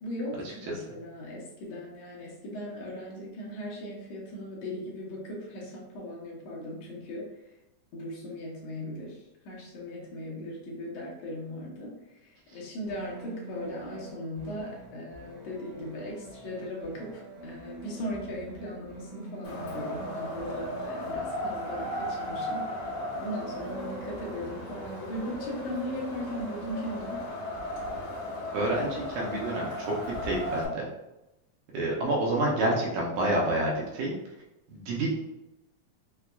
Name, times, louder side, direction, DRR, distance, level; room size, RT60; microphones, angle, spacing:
voice 1, 0.0-7.3 7.9-22.9 23.2-27.3, left 1 dB, 70° left, -4 dB, 1.7 m, -38 dB
sound 1, 12.9-24.9, right 2 dB, 55° right, 1.4 m, -46 dB
Wind, 19.4-30.7, left 1 dB, 55° left, 1.6 m, -36 dB
voice 2, 28.5-29.9 30.2-30.9 31.7-34.1 34.7-35.1, right 1 dB, 75° right, -3 dB, 1.9 m, -28 dB
5.7 x 2.3 x 2.2 m, 0.93 s
omnidirectional pair, 3.6 m